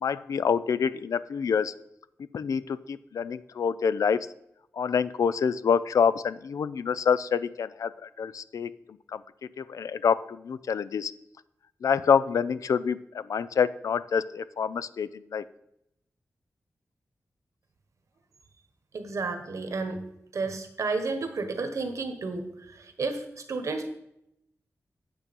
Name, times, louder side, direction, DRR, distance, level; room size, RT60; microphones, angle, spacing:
voice 1, 0.0-1.7 2.3-4.3 4.8-8.7 9.1-9.2 9.6-11.1 11.8-15.4, left 6 dB, 85° left, 16 dB, 0.4 m, -27 dB
voice 2, 18.9-20.0 20.3-23.9, right 3 dB, 70° right, 7 dB, 1.2 m, -32 dB
8.9 x 6.9 x 5.3 m, 0.81 s
wide cardioid pair, 140°, 6 cm